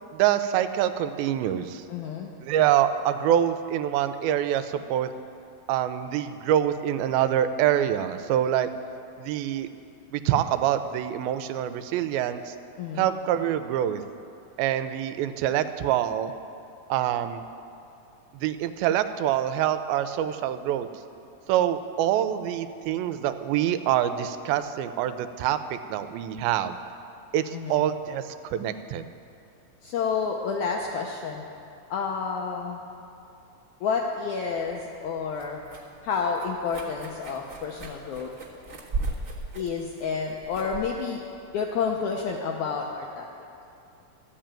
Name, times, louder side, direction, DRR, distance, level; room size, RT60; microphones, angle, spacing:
voice 1, 0.1-1.8 2.4-5.1 5.7-8.7 9.2-9.7 10.1-12.6 13.0-14.0 14.6-16.3 16.9-17.4 18.3-20.9 21.5-26.8 27.3-28.2 28.5-29.1, right 11 dB, 85° right, 11 dB, 2.4 m, -25 dB
voice 2, 1.9-2.3 12.8-13.1 27.5-27.8 29.8-31.4 31.9-32.8 33.8-35.6 36.0-38.3 39.5-41.2 41.5-43.3, left 5 dB, 80° left, 0 dB, 1.7 m, -29 dB
sound 1, 34.6-42.3, right 3 dB, 65° right, 0.6 m, -38 dB
13.5 x 5.6 x 8.8 m, 2.6 s
omnidirectional pair, 4.2 m